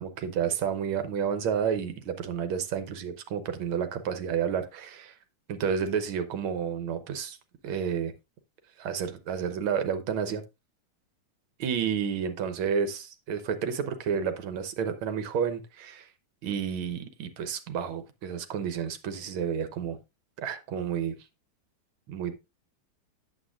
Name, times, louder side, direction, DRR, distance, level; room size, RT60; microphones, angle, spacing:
voice 1, 0.0-5.1 5.5-7.4 7.6-8.1 8.8-10.4 11.6-16.1 16.4-20.0 20.4-21.2 22.1-22.3, right 7 dB, 90° right, 9 dB, 1.7 m, -30 dB
8.8 x 7.3 x 2.5 m, 0.25 s
omnidirectional pair, 2.3 m